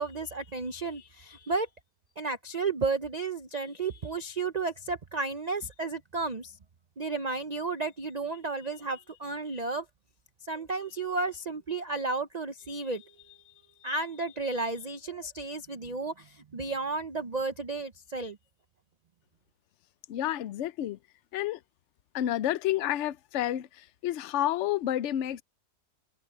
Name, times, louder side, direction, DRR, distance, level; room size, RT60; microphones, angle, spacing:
voice 1, 0.0-1.7 2.2-6.6 7.0-9.9 10.4-13.5 13.8-18.4, right 3 dB, 75° right, 0.3 m, -33 dB
voice 2, 20.1-21.0 21.3-21.6 22.1-25.4, left 12 dB, 70° left, 0.7 m, -30 dB
omnidirectional pair, 1.8 m